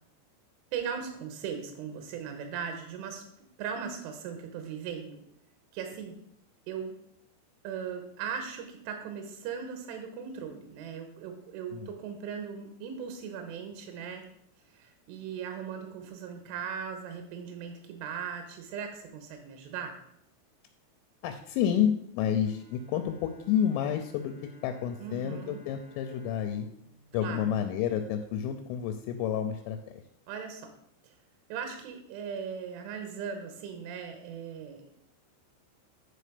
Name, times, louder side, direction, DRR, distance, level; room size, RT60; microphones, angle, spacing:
voice 1, 0.7-3.2 3.6-5.2 5.7-6.2 6.7-6.9 7.6-14.2 14.7-20.0 25.0-25.6 27.2-27.5 30.3-30.7 31.0-31.2 31.5-34.9, right 7 dB, 80° right, 5 dB, 3.4 m, -38 dB
voice 2, 21.2-24.3 24.6-26.7 27.1-30.0, left 9 dB, 80° left, 7 dB, 3.1 m, -30 dB
Bowed string instrument, 22.4-28.3, equal, 25° right, 2.4 m, -59 dB
10.5 x 4.8 x 5.0 m, 0.74 s
omnidirectional pair, 5.9 m